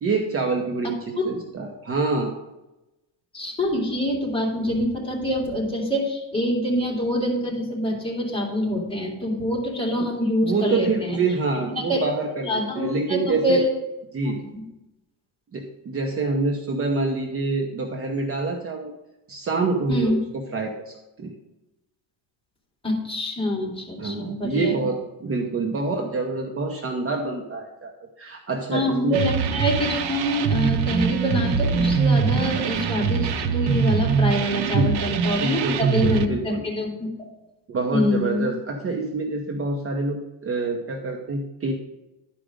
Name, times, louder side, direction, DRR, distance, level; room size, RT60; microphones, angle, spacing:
voice 1, 0.0-2.3 10.4-13.6 14.1-14.4 15.5-18.9 19.3-21.3 24.0-29.2 34.7-35.0 35.3-36.6 37.7-41.7, right 3 dB, 35° right, 2 dB, 0.9 m, -26 dB
voice 2, 3.3-11.2 11.8-12.1 12.4-13.7 14.2-14.6 19.9-20.2 22.8-24.8 28.7-37.1 37.9-38.5, equal, 15° left, -1 dB, 2.4 m, -25 dB
sound 1, 29.1-36.3, right 6 dB, 70° right, 0.8 m, -23 dB
11.5 x 5.0 x 5.1 m, 0.97 s
cardioid pair, 160°, 40 cm